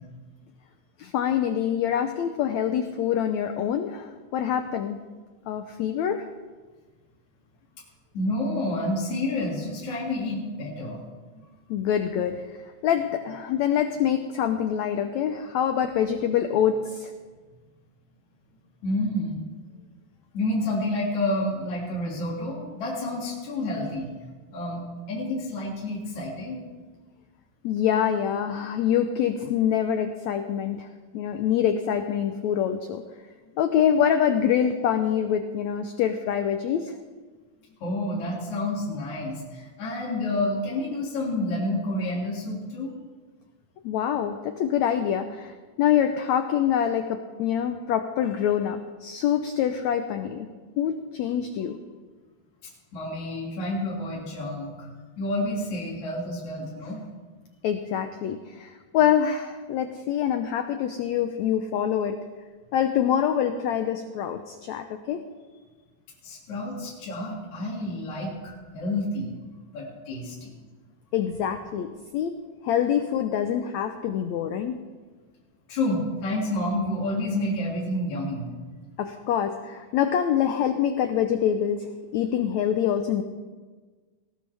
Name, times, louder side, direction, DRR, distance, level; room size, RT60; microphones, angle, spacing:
voice 1, 1.0-5.0 5.5-6.3 11.7-12.5 12.8-17.1 27.6-30.9 31.1-33.0 33.6-36.9 43.8-50.5 50.8-51.8 57.6-62.2 62.7-65.2 71.1-72.3 72.6-74.8 79.0-81.8 82.1-83.2, left 9 dB, 90° left, 7 dB, 1.6 m, -25 dB
voice 2, 8.1-11.0 11.3-11.4 18.8-19.4 20.3-24.1 24.5-26.6 37.8-42.9 52.9-54.9 55.2-57.0 66.2-69.3 69.7-70.5 75.7-78.5, left 1 dB, 55° left, -5 dB, 3.7 m, -29 dB
18.5 x 18.0 x 3.4 m, 1.4 s
omnidirectional pair, 4.1 m